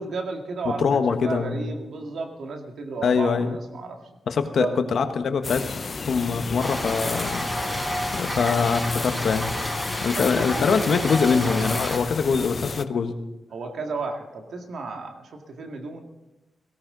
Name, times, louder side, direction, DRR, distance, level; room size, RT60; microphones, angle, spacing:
voice 1, 0.0-4.0 4.6-4.8 10.1-11.2 13.5-16.0, right 3 dB, 80° right, 3 dB, 2.2 m, -33 dB
voice 2, 0.6-1.6 3.0-3.6 4.3-5.6 6.1-7.5 8.1-9.5 10.0-13.1, left 5 dB, 75° left, 8 dB, 1.2 m, -23 dB
sound 1, 5.4-12.9, left 4 dB, 50° left, 0.6 m, -32 dB
sound 2, 6.6-12.0, equal, 10° right, 5.3 m, -30 dB
17.5 x 16.5 x 3.9 m, 1.0 s
cardioid pair, 70°, 0 cm